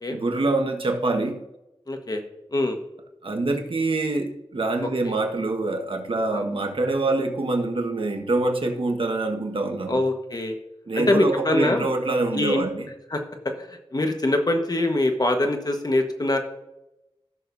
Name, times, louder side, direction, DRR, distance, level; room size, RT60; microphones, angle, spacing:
voice 1, 0.1-1.4 3.2-10.0 10.9-12.9, right 2 dB, 65° right, 3 dB, 1.5 m, -25 dB
voice 2, 1.9-2.2 2.5-2.8 4.8-5.1 6.3-6.4 9.9-10.5 10.9-11.9 12.3-12.6 13.1-13.2 13.6-13.7 13.9-16.4, left 1 dB, 40° left, 4 dB, 1.4 m, -23 dB
15.5 x 6.6 x 2.7 m, 0.93 s
wide cardioid pair, 75°, 10 cm